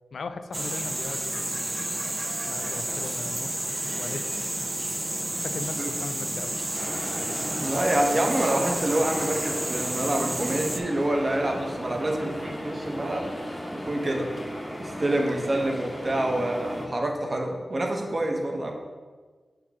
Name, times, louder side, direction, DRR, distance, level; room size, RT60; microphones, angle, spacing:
voice 1, 0.1-1.9 2.4-4.4 5.4-6.7, left 4 dB, 85° left, 10 dB, 0.3 m, -39 dB
sound 1, 0.5-10.8, right 1 dB, 20° right, 0.4 m, -31 dB
sound 2, 6.7-16.9, equal, 15° left, 0.9 m, -36 dB
voice 2, 7.6-13.3 13.7-14.3 14.8-18.7, right 1 dB, 35° right, 2 dB, 0.9 m, -27 dB
6.3 x 3.0 x 5.8 m, 1.4 s
wide cardioid pair, 115°, 0 cm